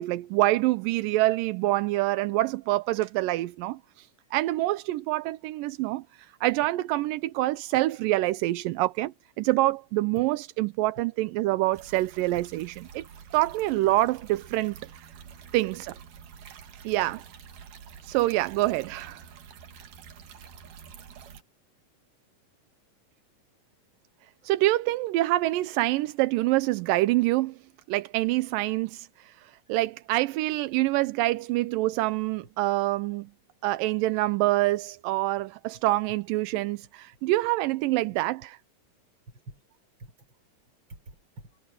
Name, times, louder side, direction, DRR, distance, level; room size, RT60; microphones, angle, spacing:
voice 1, 0.0-4.1 4.3-6.0 6.4-13.1 13.3-14.8 15.5-16.0 16.8-17.2 18.0-19.2 24.4-27.6 27.9-33.3 33.6-38.6, right 17 dB, 85° right, 2.3 m, -26 dB
sound 1, 11.7-21.4, right 7 dB, 70° right, 3.4 m, -48 dB
voice 2, 24.2-24.5 36.8-36.9 39.5-40.4 40.9-41.6, right 1 dB, 35° right, 5.9 m, -49 dB
omnidirectional pair, 3.9 m